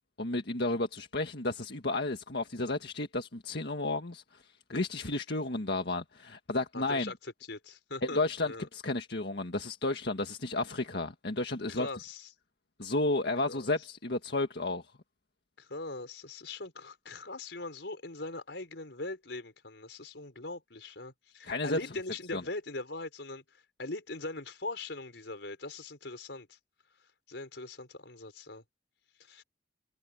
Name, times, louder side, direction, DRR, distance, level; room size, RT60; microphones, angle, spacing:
voice 1, 0.2-7.1 8.0-11.9 12.8-14.8 21.4-21.8 22.3-22.4, left 2 dB, 65° left, 1.8 m, -32 dB
voice 2, 6.7-8.7 11.7-12.3 13.5-13.7 15.6-26.6 27.3-28.6 29.2-29.4, left 2 dB, 85° left, 4.4 m, -41 dB
head